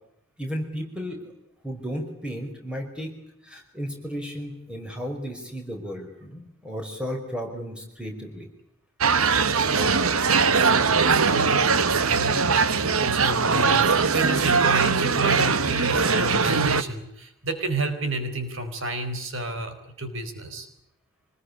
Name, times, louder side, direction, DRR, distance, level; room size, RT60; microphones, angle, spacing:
voice 1, 0.4-1.3 1.6-3.1 3.4-8.5, equal, 5° right, 3 dB, 5.1 m, -34 dB
sound 1, 9.0-16.8, right 5 dB, 85° right, 1.3 m, -21 dB
voice 2, 9.6-11.7 12.0-12.5 13.0-20.7, right 3 dB, 65° right, 7 dB, 4.4 m, -31 dB
26.0 x 21.0 x 9.8 m, 0.79 s
head